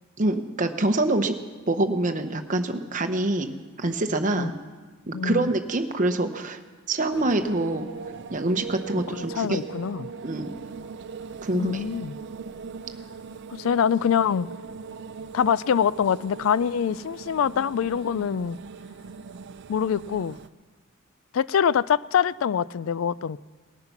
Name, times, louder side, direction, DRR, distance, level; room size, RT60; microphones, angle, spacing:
voice 1, 0.2-1.3 1.7-3.5 3.8-4.5 5.1-6.6 6.9-7.9 8.3-9.6 10.2-10.5 11.4-11.8, right 2 dB, 35° right, 0.9 m, -25 dB
voice 2, 5.1-5.5 9.1-10.1 11.5-12.1 13.5-14.5 15.3-18.6 19.7-20.4 21.3-23.4, left 7 dB, 70° left, 0.3 m, -24 dB
sound 1, 7.1-20.5, right 5 dB, 55° right, 0.4 m, -40 dB
19.0 x 9.6 x 5.8 m
head